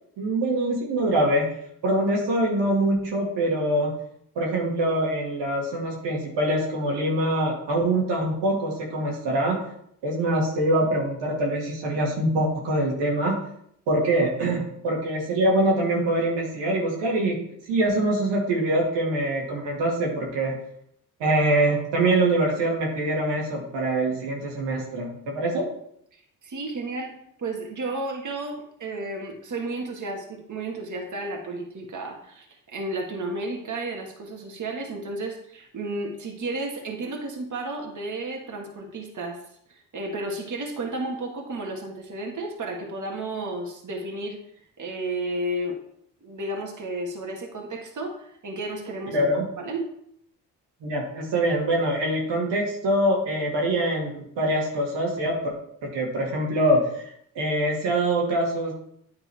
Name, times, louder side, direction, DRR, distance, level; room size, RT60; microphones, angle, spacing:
voice 1, 0.2-1.5 1.8-3.9 4.4-9.6 10.0-13.4 13.9-17.4 17.7-20.5 21.2-25.7 49.1-49.5 50.8-55.5 55.8-58.7, right 1 dB, 85° right, -3 dB, 2.1 m, -24 dB
voice 2, 26.1-39.4 39.7-44.4 44.8-45.8 46.2-49.3 49.6-49.9, right 2 dB, 45° right, 1 dB, 1.8 m, -32 dB
9.4 x 3.8 x 4.7 m, 0.70 s
supercardioid pair, 50°, 42 cm